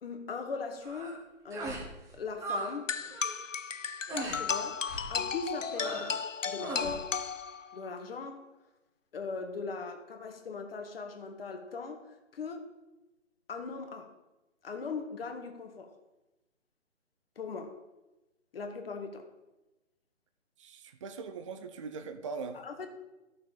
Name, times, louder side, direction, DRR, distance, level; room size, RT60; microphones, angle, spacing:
voice 1, 0.0-2.9 4.2-4.8 5.1-6.2 6.5-7.1 7.7-8.4 9.1-12.1 12.3-12.7 13.5-14.1 14.6-15.9 17.3-17.8 18.5-19.3 22.5-22.9, left 4 dB, 50° left, 1.8 m, -39 dB
sound 1, 0.8-1.2 1.5-1.9 2.2-2.7 3.0-3.4 4.1-4.4 4.8-5.1 5.7-6.2 6.6-7.0, right 2 dB, 10° right, 1.3 m, -38 dB
sound 2, 2.9-7.9, left 6 dB, 90° left, 0.7 m, -35 dB
voice 2, 20.6-22.6, right 4 dB, 25° right, 0.6 m, -41 dB
12.5 x 6.6 x 7.1 m
figure-of-eight pair, 140°, 37 cm